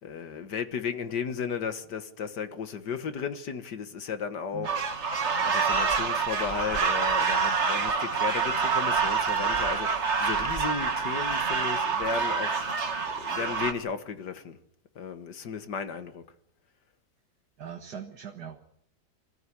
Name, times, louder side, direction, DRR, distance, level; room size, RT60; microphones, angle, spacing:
voice 1, 0.0-4.8 5.3-12.8 13.2-14.6 15.0-16.2, left 6 dB, 80° left, 2.0 m, -34 dB
sound 1, 4.6-13.7, right 5 dB, 45° right, 1.7 m, -27 dB
voice 2, 17.6-18.8, right 8 dB, 70° right, 2.1 m, -41 dB
26.0 x 14.5 x 9.8 m
omnidirectional pair, 1.8 m